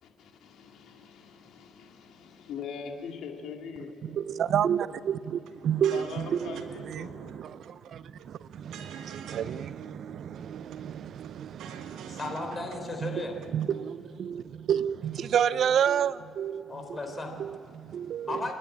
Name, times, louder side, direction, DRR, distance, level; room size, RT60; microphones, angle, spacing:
voice 1, 0.0-4.2 5.9-7.3, left 6 dB, 80° left, 2.2 m, -42 dB
voice 2, 4.0-12.4 13.0-17.0 17.4-18.5, right 9 dB, 65° right, 0.5 m, -30 dB
sound 1, 5.5-5.6 5.8-6.7 6.9-7.0 7.3-7.9 8.2-9.5 9.8-9.9 10.2-10.8 11.1-12.4 12.7-12.8 13.1-13.7, right 8 dB, 85° right, 1.4 m, -46 dB
voice 3, 12.1-13.3 16.7-17.3 18.3-18.5, left 2 dB, 30° left, 3.9 m, -35 dB
28.5 x 11.0 x 8.7 m
cardioid pair, 90°, 0 cm